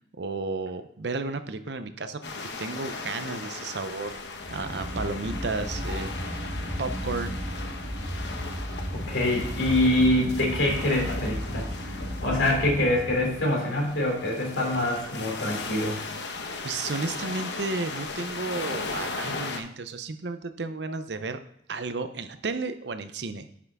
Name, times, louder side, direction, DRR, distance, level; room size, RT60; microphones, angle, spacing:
voice 1, 0.2-4.2 4.5-6.1 6.8-7.4 16.6-21.4 21.7-23.5, right 3 dB, 65° right, 10 dB, 0.7 m, -33 dB
sound 1, 2.2-19.6, left 3 dB, 70° left, 1.0 m, -37 dB
sound 2, 4.3-13.5, equal, 30° right, 3.0 m, -34 dB
voice 2, 8.9-16.1, left 1 dB, 90° left, -1 dB, 3.0 m, -25 dB
9.8 x 5.7 x 3.6 m, 0.72 s
head